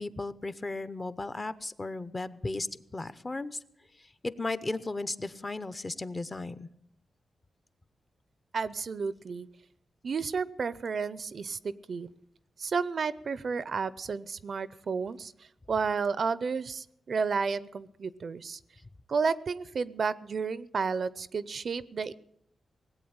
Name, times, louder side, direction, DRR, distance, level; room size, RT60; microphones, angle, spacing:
voice 1, 0.0-2.7 2.9-3.6 4.2-6.7, left 2 dB, 25° left, 14 dB, 0.7 m, -35 dB
voice 2, 8.5-9.5 10.0-12.1 12.6-15.3 15.7-18.6 19.1-22.1, right 5 dB, 55° right, 17 dB, 0.6 m, -32 dB
18.5 x 8.3 x 8.7 m, 0.75 s
wide cardioid pair, 110°, 0 cm